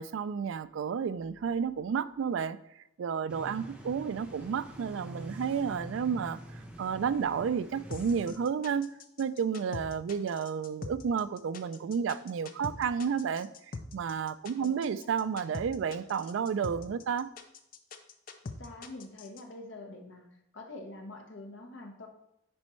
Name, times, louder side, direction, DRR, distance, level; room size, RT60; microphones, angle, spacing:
voice 1, 0.0-2.6 3.0-6.4 6.8-8.9 9.2-13.5 13.9-17.3, right 6 dB, 75° right, 0.3 m, -31 dB
sound 1, 3.3-8.3, right 1 dB, 5° right, 0.6 m, -45 dB
sound 2, 7.9-19.4, left 4 dB, 45° left, 0.4 m, -43 dB
voice 2, 18.6-20.3 20.5-22.1, left 2 dB, 70° left, 1.0 m, -45 dB
9.6 x 4.3 x 3.1 m
head